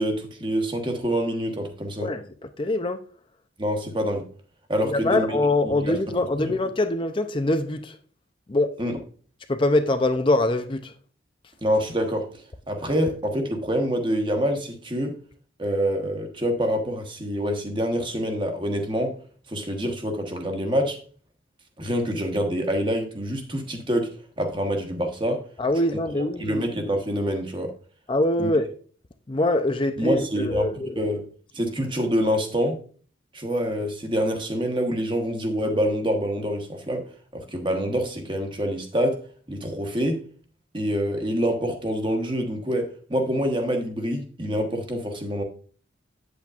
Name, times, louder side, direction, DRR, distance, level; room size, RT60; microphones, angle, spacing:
voice 1, 0.0-2.1 3.6-4.2 4.7-5.4 5.6-6.5 8.8-9.0 11.6-12.3 12.7-15.2 15.6-19.1 19.5-21.0 21.8-24.1 24.4-25.4 26.4-27.7 28.4-28.5 30.0-31.3 31.5-32.8 33.3-37.0 37.3-39.2 39.5-40.2 40.7-45.4, equal, 25° right, 1.2 m, -26 dB
voice 2, 2.6-3.0 4.8-8.0 8.5-8.7 9.5-10.9 25.6-26.6 28.1-28.7 29.3-31.1, left 2 dB, 25° left, 0.5 m, -23 dB
8.7 x 8.2 x 2.5 m
head